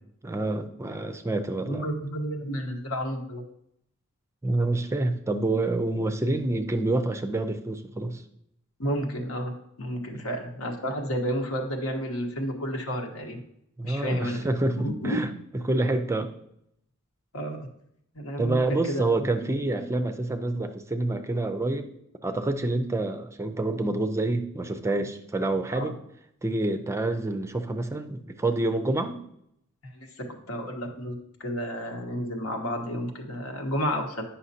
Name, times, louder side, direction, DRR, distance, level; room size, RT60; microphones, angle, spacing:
voice 1, 0.2-1.9 4.4-8.2 10.1-10.2 13.8-15.3 15.6-16.3 18.4-21.9 22.2-26.0 26.4-29.2, right 2 dB, 15° right, 7 dB, 0.4 m, -27 dB
voice 2, 1.7-3.4 8.8-9.5 9.8-13.4 13.8-14.4 14.8-15.2 17.3-17.6 18.1-19.0 25.7-25.9 29.9-30.1 30.5-34.2, equal, 80° left, 2 dB, 1.2 m, -31 dB
9.4 x 5.7 x 2.8 m, 0.75 s
head